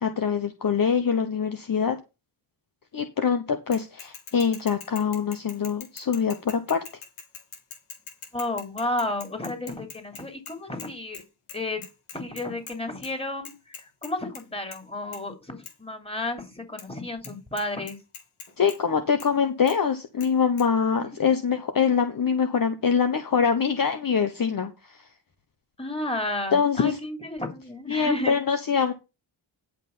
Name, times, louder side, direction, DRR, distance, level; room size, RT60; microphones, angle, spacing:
voice 1, 0.0-2.0 2.9-6.8 18.6-25.0 26.5-27.0 27.9-28.9, left 6 dB, 45° left, 7 dB, 1.1 m, -24 dB
Bicycle / Mechanisms, 3.7-10.9 11.1-11.2 11.5-12.7 13.0-13.1 13.4-14.4 14.7-14.9 15.1-15.2 15.6-15.7 16.8-16.9 17.2-17.3 17.6-18.8 19.2-19.3 19.7-19.8 20.2-20.3 20.6-20.7, left 6 dB, 80° left, 2.6 m, -42 dB
voice 2, 8.3-11.2 11.5-11.8 12.1-18.0 21.2-21.3 25.8-28.3, left 2 dB, 10° left, 4 dB, 3.1 m, -32 dB
10.5 x 5.6 x 5.5 m, 0.27 s
cardioid pair, 70°, 49 cm